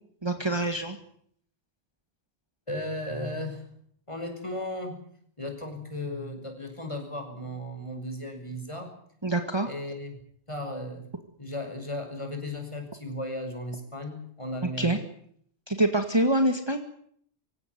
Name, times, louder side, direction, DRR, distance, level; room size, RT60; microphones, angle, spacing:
voice 1, 0.2-1.0 9.2-9.7 14.6-15.0 15.7-16.8, right 1 dB, 20° right, 6 dB, 1.9 m, -25 dB
voice 2, 2.7-3.6 4.1-5.0 5.4-8.9 9.7-10.2 10.5-11.1 11.4-15.0, left 1 dB, 25° left, 5 dB, 5.8 m, -35 dB
25.5 x 16.5 x 9.5 m, 0.65 s
omnidirectional pair, 1.2 m